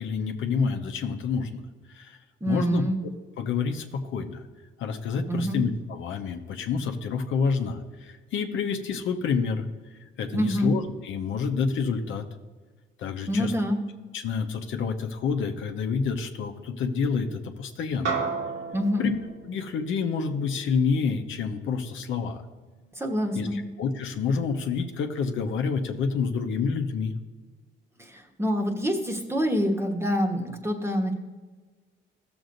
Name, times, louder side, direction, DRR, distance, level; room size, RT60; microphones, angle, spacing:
voice 1, 0.0-1.6 1.9-2.2 2.5-2.8 3.4-4.4 4.8-9.7 10.2-12.3 13.0-13.5 14.1-18.3 19.0-19.2 19.5-22.4 23.3-27.1, left 5 dB, 75° left, 5 dB, 0.8 m, -28 dB
voice 2, 2.4-3.0 5.3-5.6 10.3-10.7 13.3-13.8 18.7-19.1 22.9-23.6 28.0-31.1, equal, 10° right, 3 dB, 1.2 m, -26 dB
sound 1, 18.0-22.7, right 5 dB, 80° right, 2.0 m, -35 dB
14.5 x 7.0 x 2.6 m, 1.4 s
cardioid pair, 90°, 20 cm